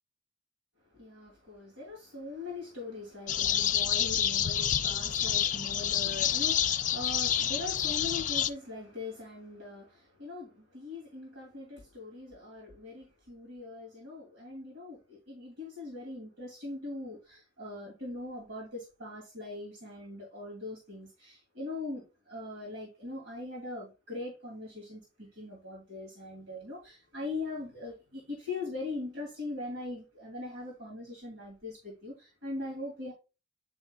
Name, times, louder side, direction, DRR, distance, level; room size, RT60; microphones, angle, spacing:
voice 1, 0.9-33.1, left 2 dB, 85° right, 2.6 m, -41 dB
sound 1, 3.3-8.5, left 9 dB, 40° left, 0.5 m, -28 dB
9.5 x 5.2 x 2.3 m
head